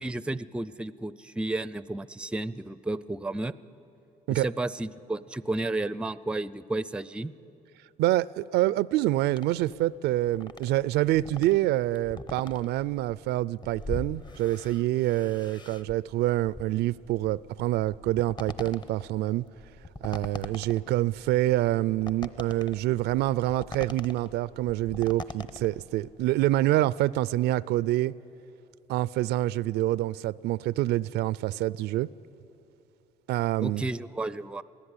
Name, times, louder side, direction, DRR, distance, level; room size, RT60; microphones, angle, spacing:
voice 1, 0.0-3.6 4.3-7.3 33.6-34.6, right 2 dB, 5° right, 0.4 m, -32 dB
voice 2, 8.0-19.4 20.0-28.1 28.9-32.1 33.3-33.9, right 15 dB, 80° right, 0.4 m, -26 dB
sound 1, 9.3-26.6, left 2 dB, 25° left, 0.9 m, -43 dB
22.0 x 16.0 x 9.8 m
cardioid pair, 110°, 17 cm